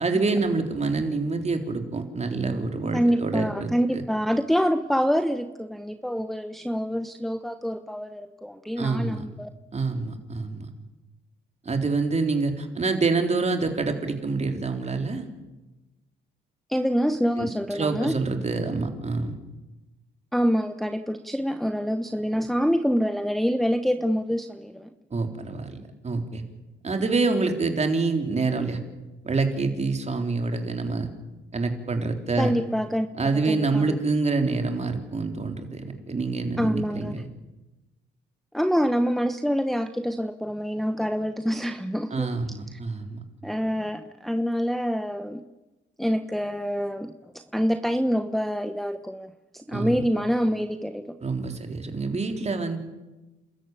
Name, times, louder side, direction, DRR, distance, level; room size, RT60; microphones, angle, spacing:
voice 1, 0.0-4.0 8.8-9.2 9.7-10.7 11.7-15.3 17.4-17.5 17.7-19.3 25.1-26.4 26.8-28.8 29.2-31.1 31.5-32.6 33.2-37.3 42.1-43.2 49.7-50.0 51.2-52.8, right 3 dB, 35° right, 5 dB, 3.7 m, -26 dB
voice 2, 2.9-9.5 16.7-18.2 20.3-24.9 32.4-33.1 33.5-34.0 36.6-37.1 38.5-42.8 43.4-45.4 46.0-51.2, equal, ahead, 7 dB, 1.0 m, -26 dB
30.0 x 13.5 x 9.2 m, 1.1 s
cardioid pair, 90°, 20 cm